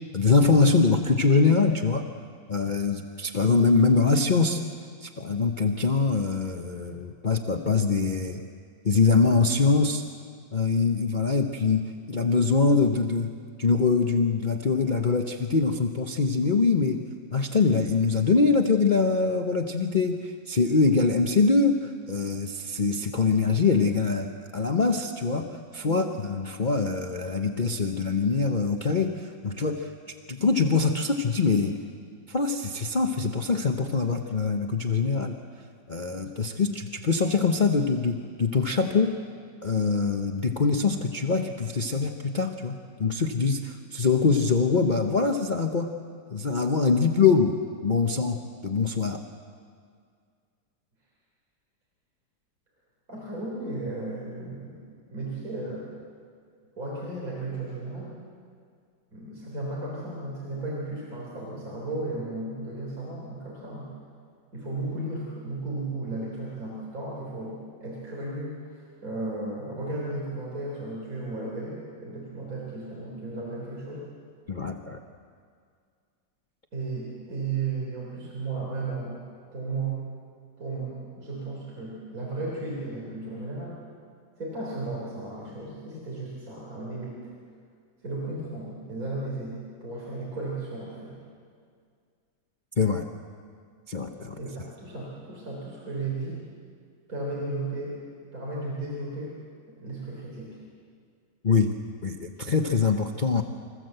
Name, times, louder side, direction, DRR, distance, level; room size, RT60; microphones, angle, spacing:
voice 1, 0.1-2.0 2.5-4.6 5.0-8.4 8.8-10.0 10.5-17.0 17.3-29.9 30.3-31.8 32.3-35.4 35.9-39.1 39.6-45.9 46.3-49.2 74.5-75.0 92.8-93.1 93.9-94.4 101.4-101.7 102.0-103.4, left 4 dB, 40° left, 3 dB, 0.7 m, -24 dB
voice 2, 25.8-26.1 53.1-54.8 55.1-55.9 56.8-58.2 59.1-63.9 64.5-74.1 76.7-79.2 79.5-80.0 80.6-83.8 84.4-87.3 88.0-91.2 94.3-96.4 97.1-98.0 98.3-99.4 99.7-100.6, right 2 dB, 50° right, -4 dB, 4.1 m, -34 dB
26.0 x 15.5 x 7.9 m, 2.2 s
omnidirectional pair, 1.9 m